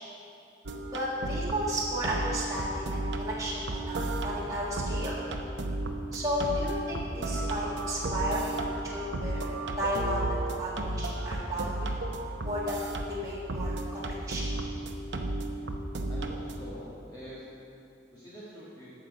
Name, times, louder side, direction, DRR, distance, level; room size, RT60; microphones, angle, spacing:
sound 1, 0.6-16.7, right 2 dB, 70° right, 0.8 m, -34 dB
voice 1, 0.9-5.2 6.1-9.5 9.8-11.9 12.4-14.5, equal, 20° right, -7 dB, 1.6 m, -33 dB
voice 2, 16.1-17.4 18.1-18.9, equal, 20° left, -9 dB, 1.7 m, -45 dB
15.0 x 6.3 x 5.3 m, 2.6 s
head